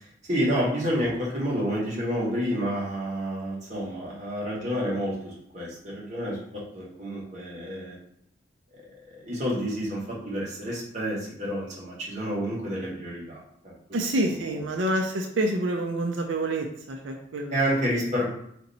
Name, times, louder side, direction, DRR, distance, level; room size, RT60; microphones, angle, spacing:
voice 1, 0.3-8.0 8.7-8.8 9.1-13.7 14.1-14.7 17.5-18.2, equal, 40° right, -5 dB, 1.4 m, -29 dB
voice 2, 13.9-17.7, right 1 dB, 90° right, 2 dB, 0.5 m, -27 dB
4.3 x 2.9 x 4.0 m, 0.74 s
head